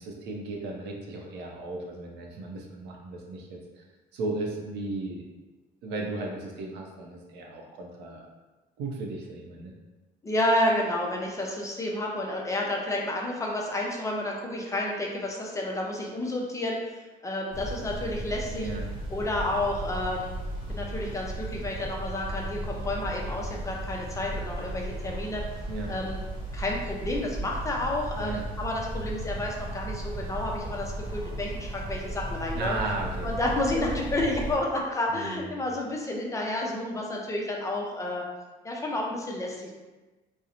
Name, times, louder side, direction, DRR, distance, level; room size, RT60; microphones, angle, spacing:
voice 1, 0.0-3.8 4.1-5.2 5.8-8.2 8.8-9.7 18.5-18.8 25.7-25.9 28.1-28.4 32.5-33.4 35.1-35.6, right 2 dB, 80° right, 0 dB, 0.5 m, -35 dB
voice 2, 10.2-18.7 19.1-20.3 20.7-25.4 25.9-26.2 26.5-32.8 33.2-38.2 38.6-39.7, left 1 dB, 20° left, -1 dB, 0.4 m, -30 dB
sound 1, 17.5-34.6, right 1 dB, 30° right, 0.8 m, -35 dB
2.5 x 2.0 x 2.8 m, 1.2 s
cardioid pair, 110°, 17 cm